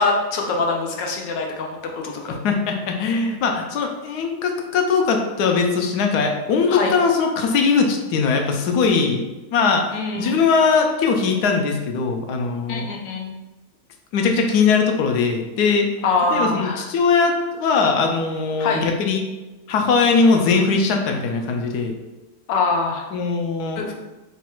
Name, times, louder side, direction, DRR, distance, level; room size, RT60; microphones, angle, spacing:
voice 1, 0.0-2.4 6.7-6.9 9.9-10.4 12.7-13.4 16.0-16.9 18.6-18.8 22.5-23.1 23.8-23.9, left 3 dB, 90° left, 1 dB, 1.4 m, -23 dB
voice 2, 2.4-12.9 14.1-15.9 16.3-19.2 19.7-21.9 23.1-23.8, left 5 dB, 75° left, 3 dB, 1.1 m, -20 dB
4.0 x 2.3 x 4.4 m, 1.1 s
omnidirectional pair, 1.9 m